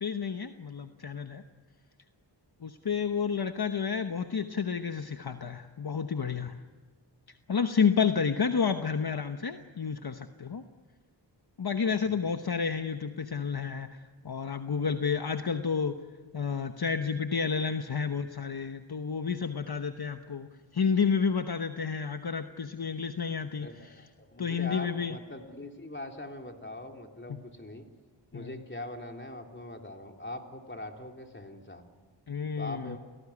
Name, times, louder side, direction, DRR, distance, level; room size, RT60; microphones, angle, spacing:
voice 1, 0.0-1.4 2.6-6.6 7.5-10.6 11.6-16.0 16.3-20.5 20.7-23.9 24.4-25.1 28.3-28.5 32.3-33.0, left 6 dB, 55° left, 7 dB, 1.1 m, -30 dB
voice 2, 23.6-27.8 28.3-31.8 32.6-33.0, left 1 dB, 25° left, 3 dB, 3.3 m, -42 dB
29.5 x 18.0 x 9.7 m, 1.4 s
wide cardioid pair, 55°, 43 cm